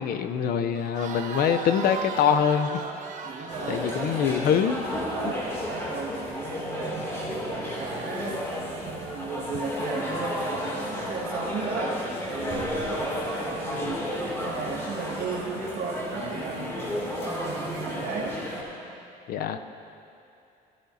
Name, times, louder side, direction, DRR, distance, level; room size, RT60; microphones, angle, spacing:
voice 1, 0.0-2.8 3.7-4.8 5.2-5.3 19.3-19.6, left 8 dB, 65° left, 9 dB, 0.6 m, -24 dB
Crowd, 0.7-5.7, right 5 dB, 50° right, 1.2 m, -38 dB
voice 2, 3.2-4.4 5.1-8.5 8.8-12.0 12.3-13.1 13.4-14.1 14.4-16.8 17.1-18.3, right 4 dB, 65° right, -2 dB, 1.7 m, -35 dB
sound 1, 3.5-18.6, equal, 15° left, 2.5 m, -32 dB
15.5 x 12.0 x 2.7 m, 2.7 s
cardioid pair, 110°, 17 cm